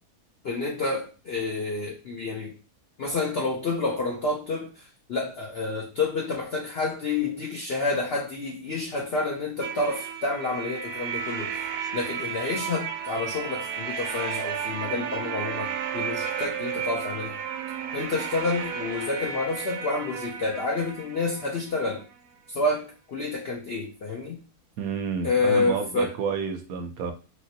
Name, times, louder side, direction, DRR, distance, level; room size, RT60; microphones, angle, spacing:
voice 1, 0.4-2.5 3.0-11.5 11.9-17.4 17.9-22.0 22.5-24.4 25.2-26.1, left 3 dB, 65° left, -1 dB, 0.6 m, -29 dB
sound 1, 9.6-22.3, right 7 dB, 90° right, 1.2 m, -33 dB
voice 2, 24.8-27.1, right 6 dB, 70° right, 6 dB, 1.0 m, -30 dB
3.0 x 3.0 x 2.7 m, 0.33 s
omnidirectional pair, 1.7 m